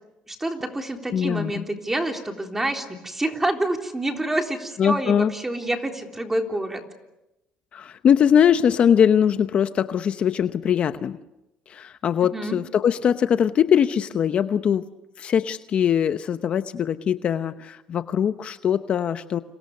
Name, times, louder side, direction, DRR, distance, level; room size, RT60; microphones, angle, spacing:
voice 1, 0.3-6.8 12.3-12.6, right 1 dB, 10° right, 4 dB, 3.7 m, -27 dB
voice 2, 1.1-1.6 4.8-5.3 7.7-11.2 11.7-14.8 15.2-19.4, left 8 dB, 45° left, 11 dB, 0.9 m, -21 dB
29.5 x 27.5 x 6.7 m, 0.93 s
cardioid pair, 120°, 3 cm